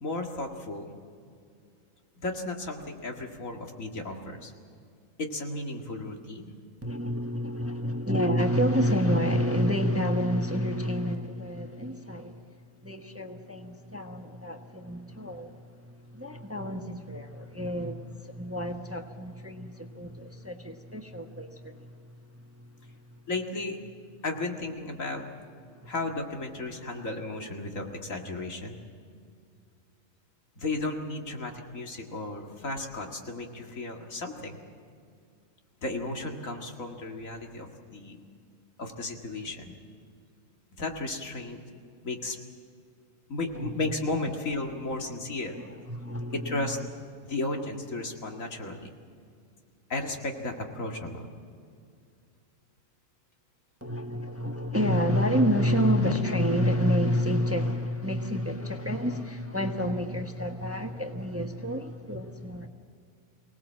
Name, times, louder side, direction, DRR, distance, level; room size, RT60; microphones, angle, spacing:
voice 1, 0.0-1.0 2.2-4.5 5.2-6.6 23.3-23.8 24.2-25.2 25.9-28.8 30.6-34.6 35.8-38.2 38.8-39.8 40.8-41.6 42.0-42.4 43.3-45.6 46.3-46.8 47.3-48.9 49.9-51.3, left 2 dB, 75° left, 2.5 m, -34 dB
voice 2, 6.8-12.4 12.8-15.5 15.8-21.9 43.5-43.7 45.9-46.7 53.8-62.7, equal, 10° right, 1.2 m, -29 dB
24.0 x 18.5 x 7.5 m
omnidirectional pair, 1.4 m